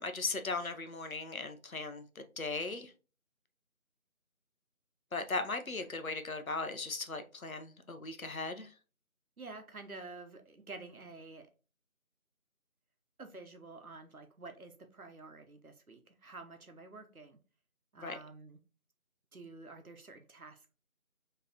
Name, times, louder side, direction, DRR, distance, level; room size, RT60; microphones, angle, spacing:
voice 1, 0.0-2.9 5.1-8.7 18.0-18.2, left 3 dB, 75° left, 0.8 m, -38 dB
voice 2, 9.4-11.5 13.2-17.4 17.9-18.6 19.3-20.7, right 3 dB, 85° right, 0.9 m, -49 dB
4.1 x 3.2 x 2.8 m
figure-of-eight pair, 180°, 42 cm